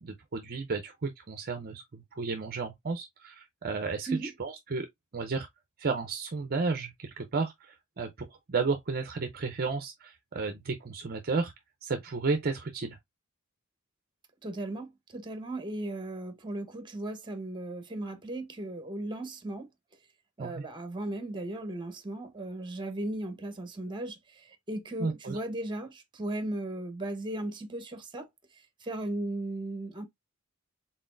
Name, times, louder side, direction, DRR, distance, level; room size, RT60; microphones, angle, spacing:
voice 1, 0.0-4.1 4.4-4.9 5.1-5.5 5.8-11.5 11.8-13.0 20.4-20.6 25.0-25.4, right 4 dB, 45° right, 0.6 m, -33 dB
voice 2, 14.4-19.7 20.4-28.3 28.5-30.0, right 1 dB, 20° right, 1.0 m, -36 dB
4.2 x 3.8 x 2.5 m
head